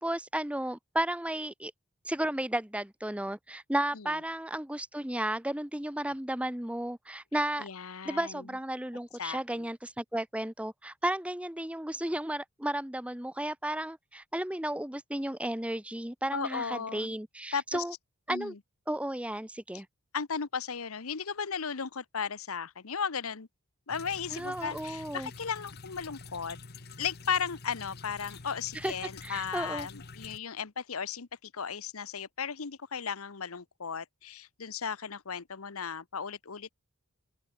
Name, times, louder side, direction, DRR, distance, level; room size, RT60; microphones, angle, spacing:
voice 1, 0.0-1.7 2.0-7.7 8.0-17.9 18.3-18.5 18.9-19.9 24.3-25.3 28.7-28.9 29.2-29.9, right 1 dB, 5° right, 1.1 m, -33 dB
voice 2, 7.6-8.4 9.2-9.7 16.3-17.1 17.5-17.8 18.3-18.6 20.1-23.5 23.9-26.6 27.0-36.7, left 6 dB, 85° left, 1.0 m, -36 dB
sound 1, 23.9-30.4, left 4 dB, 50° left, 1.2 m, -47 dB
open air
head